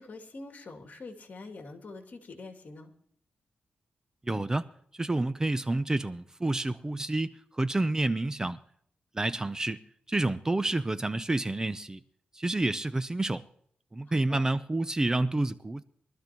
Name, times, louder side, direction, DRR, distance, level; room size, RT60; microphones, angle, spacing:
voice 1, 0.0-2.9 14.1-14.4, left 3 dB, 50° left, 2.4 m, -45 dB
voice 2, 4.3-4.7 5.0-8.6 9.1-9.8 10.1-12.0 12.3-13.4 13.9-15.8, right 2 dB, 20° right, 0.5 m, -29 dB
23.0 x 13.0 x 3.0 m
wide cardioid pair, 110°, 3 cm